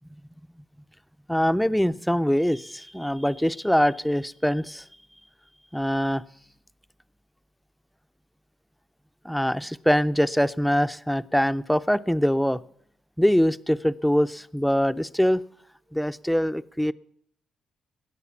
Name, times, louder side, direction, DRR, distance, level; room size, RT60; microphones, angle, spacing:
voice 1, 1.3-4.8 5.7-6.2 9.2-12.6 13.2-15.4 15.9-16.9, equal, ahead, 13 dB, 0.5 m, -23 dB
21.0 x 8.3 x 7.1 m, 0.69 s
cardioid pair, 90°, 0 cm